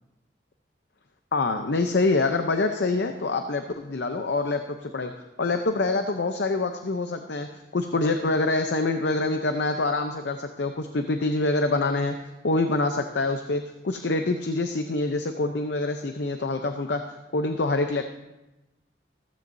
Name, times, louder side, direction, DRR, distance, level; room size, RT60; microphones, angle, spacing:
voice 1, 1.3-7.5 7.7-12.2 12.4-18.0, left 3 dB, 75° left, 6 dB, 0.6 m, -26 dB
14.5 x 14.5 x 2.7 m, 1.0 s
head